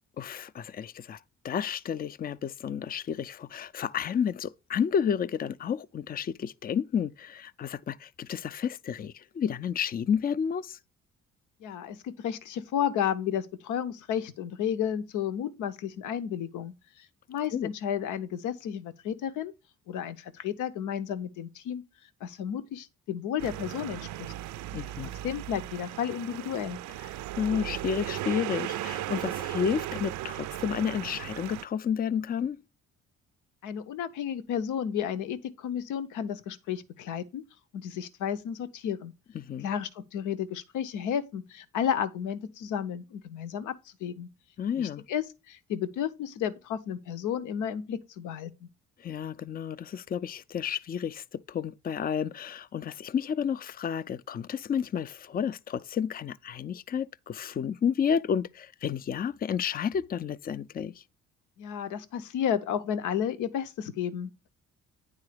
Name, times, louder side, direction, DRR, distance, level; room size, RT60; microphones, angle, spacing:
voice 1, 0.2-1.2 1.4-10.8 17.5-17.7 24.7-25.1 27.4-32.6 39.3-39.7 44.6-45.0 49.0-61.0, left 7 dB, 30° left, 0.4 m, -31 dB
voice 2, 11.6-19.5 19.9-21.8 22.2-24.3 25.0-26.8 33.6-37.4 37.7-39.1 39.6-44.3 44.8-48.7 61.6-64.5, left 9 dB, 90° left, 0.8 m, -32 dB
sound 1, 23.4-31.6, right 14 dB, 75° right, 0.5 m, -36 dB
9.7 x 3.8 x 4.9 m
cardioid pair, 90°, 30 cm